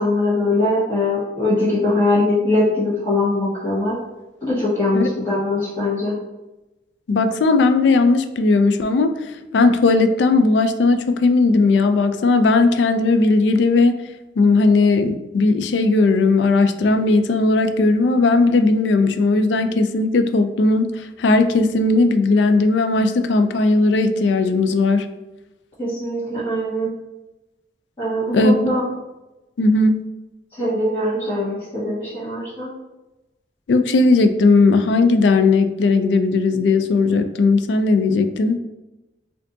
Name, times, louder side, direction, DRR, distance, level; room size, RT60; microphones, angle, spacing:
voice 1, 0.0-3.9 4.4-6.2 25.8-26.9 28.0-28.8 30.5-32.7, left 2 dB, 30° left, -12 dB, 1.5 m, -21 dB
voice 2, 7.1-9.1 9.5-14.0 14.4-25.1 28.3-28.6 29.6-30.0 33.7-38.6, left 3 dB, 80° left, 9 dB, 0.3 m, -17 dB
4.4 x 2.6 x 2.6 m, 1.0 s
head